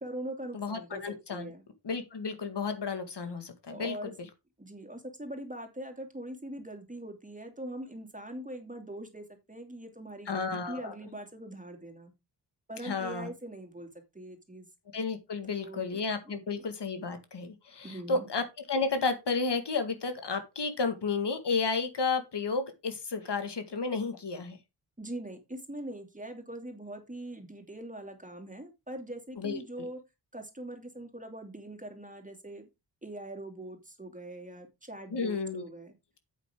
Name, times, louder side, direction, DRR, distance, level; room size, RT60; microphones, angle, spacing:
voice 1, 0.0-1.6 3.7-4.1 4.6-12.1 12.7-13.9 14.1-14.7 15.5-16.6 17.8-18.3 25.0-30.0 30.3-32.7 33.0-35.9, right 1 dB, 20° right, 2.7 m, -42 dB
voice 2, 0.5-1.5 1.8-4.1 10.3-10.9 12.8-13.3 14.9-18.4 18.7-24.6 29.4-29.9 35.1-35.6, left 4 dB, 70° left, 2.0 m, -32 dB
9.1 x 8.3 x 3.7 m
wide cardioid pair, 90°, 42 cm